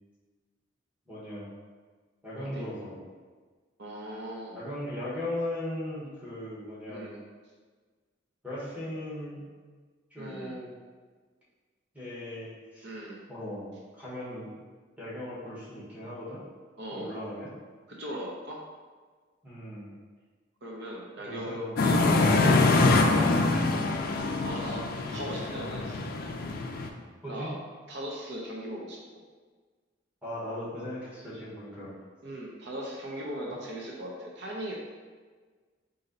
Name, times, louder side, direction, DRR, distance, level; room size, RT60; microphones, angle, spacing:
voice 1, 1.1-1.5 2.2-3.1 4.5-7.1 8.4-9.4 10.1-10.7 11.9-13.7 14.0-14.5 15.0-16.4 16.9-17.5 19.4-19.9 21.2-21.7 27.2-27.5 30.2-31.9 33.5-33.6, left 1 dB, 10° right, -10 dB, 1.2 m, -38 dB
voice 2, 3.8-4.6 6.9-7.2 10.2-10.6 12.8-13.2 16.8-17.1 17.9-18.6 20.6-21.6 21.9-22.6 24.4-26.1 27.3-27.6 27.9-29.0 32.2-34.7, right 1 dB, 60° right, -3 dB, 0.7 m, -39 dB
sound 1, 21.8-26.9, left 3 dB, 50° left, 0.4 m, -24 dB
4.2 x 2.7 x 3.9 m, 1.5 s
head